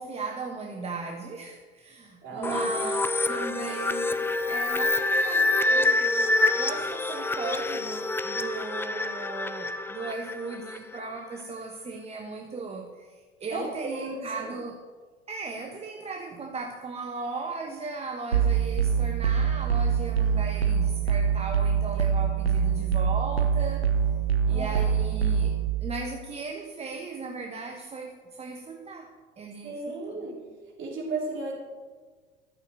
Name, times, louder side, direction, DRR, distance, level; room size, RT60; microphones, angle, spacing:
voice 1, 0.0-14.8 15.3-23.9 24.5-25.5 25.8-30.3, right 4 dB, 20° right, 2 dB, 1.1 m, -37 dB
voice 2, 2.2-2.7 3.7-3.8 13.5-14.5 24.5-24.8 29.6-30.5 30.8-31.6, right 3 dB, 40° right, -2 dB, 3.8 m, -35 dB
sound 1, 2.4-11.0, left 2 dB, 5° left, 0.5 m, -27 dB
sound 2, 18.3-25.7, right 7 dB, 85° right, 1.0 m, -24 dB
12.5 x 7.4 x 6.7 m, 1.5 s
figure-of-eight pair, 75°, 30 cm